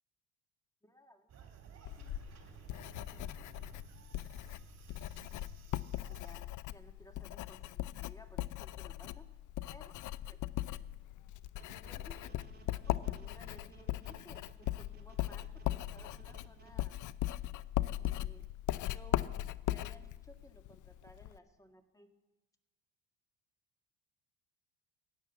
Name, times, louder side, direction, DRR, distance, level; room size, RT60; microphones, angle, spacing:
voice 1, 0.8-2.9 5.9-9.3 9.7-10.4 11.7-15.6 15.9-17.0 18.0-18.5 18.9-19.2 19.7-22.1, left 1 dB, 10° left, 6 dB, 1.9 m, -59 dB
sound 1, 1.3-6.4, right 7 dB, 40° right, 2.6 m, -55 dB
Writing, 1.9-21.4, left 15 dB, 50° left, 0.6 m, -39 dB
sound 2, 11.6-16.9, right 5 dB, 25° right, 3.0 m, -57 dB
16.0 x 9.9 x 7.1 m, 1.1 s
hypercardioid pair, 65°, 39 cm